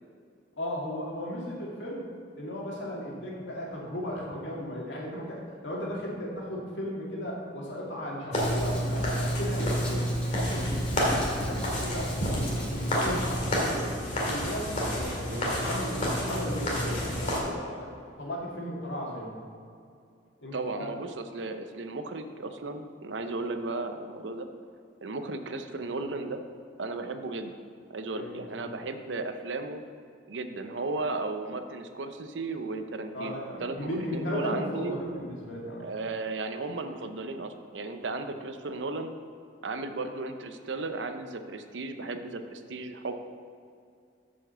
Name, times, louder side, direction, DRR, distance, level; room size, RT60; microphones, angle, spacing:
voice 1, 0.6-2.1 2.4-19.3 20.4-20.9 28.1-28.7 33.1-35.9, equal, 80° left, -3 dB, 2.1 m, -36 dB
sound 1, 8.3-17.4, equal, 40° left, 2.2 m, -29 dB
Writing, 8.4-13.4, equal, 5° left, 1.1 m, -39 dB
voice 2, 20.5-24.5 25.0-26.4 26.8-27.6 27.9-29.8 30.3-35.0 35.8-39.1 39.6-43.1, right 3 dB, 80° right, 8 dB, 0.7 m, -35 dB
7.2 x 5.3 x 6.8 m, 2.3 s
head